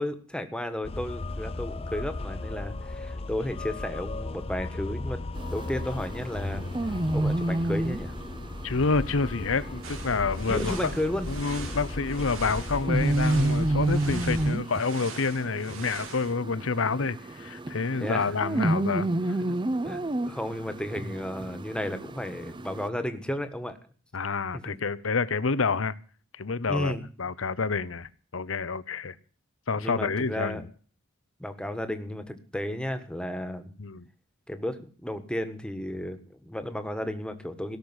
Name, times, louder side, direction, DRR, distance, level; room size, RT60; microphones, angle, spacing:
voice 1, 0.0-5.2 5.5-6.6 7.1-8.1 10.5-11.3 18.0-18.3 19.4-19.6 19.8-23.8 24.5-24.8 26.7-27.0 29.8-30.6 31.4-33.7 34.5-37.8, left 1 dB, 5° left, 1.5 m, -33 dB
sound 1, 0.8-14.5, left 2 dB, 30° left, 0.6 m, -36 dB
sound 2, 5.3-22.9, right 1 dB, 25° right, 0.6 m, -31 dB
voice 2, 8.6-10.9 11.3-19.4 24.1-25.9 26.4-29.2 29.7-30.7 33.8-34.0, left 4 dB, 80° left, 0.8 m, -28 dB
sound 3, 9.8-16.3, right 5 dB, 80° right, 2.6 m, -43 dB
17.0 x 6.6 x 9.7 m
head